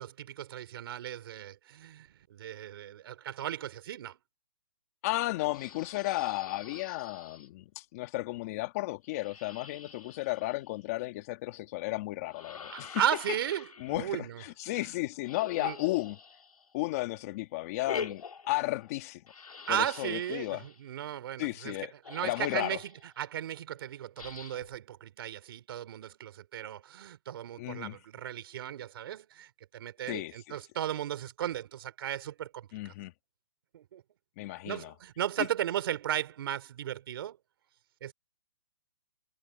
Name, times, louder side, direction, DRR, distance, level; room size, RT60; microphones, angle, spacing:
voice 1, 0.0-4.2 12.7-14.4 14.8-14.9 15.6-15.8 19.7-21.8 22.1-22.9 23.2-32.9 33.7-34.0 34.6-37.4 38.0-38.1, right 11 dB, 40° right, 3.6 m, -36 dB
voice 2, 5.0-13.0 13.8-16.2 16.7-18.2 18.5-19.2 19.7-20.6 21.4-21.9 22.2-22.8 27.6-28.0 30.1-30.6 32.7-33.1 34.4-34.9, left 19 dB, 25° left, 1.7 m, -34 dB
sound 1, 5.5-7.5 9.1-10.9 12.3-14.1 15.2-16.9 17.8-19.0 19.3-20.8 21.8-21.9 22.0-23.1 24.2-24.8, left 5 dB, 85° left, 2.1 m, -45 dB
hypercardioid pair, 165°, 18 cm